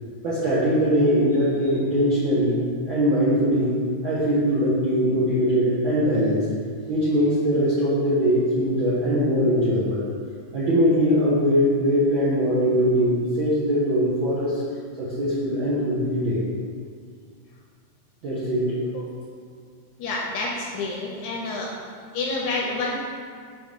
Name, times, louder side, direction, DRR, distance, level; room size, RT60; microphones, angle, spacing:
voice 1, 0.2-2.6 2.9-3.7 4.0-6.4 6.9-10.1 10.5-14.6 15.0-16.5 18.2-18.8, equal, 65° right, -11 dB, 1.2 m, -21 dB
voice 2, 20.0-21.7 22.1-23.0, left 3 dB, 80° left, -2 dB, 1.8 m, -28 dB
5.3 x 4.5 x 5.2 m, 2.1 s
omnidirectional pair, 3.9 m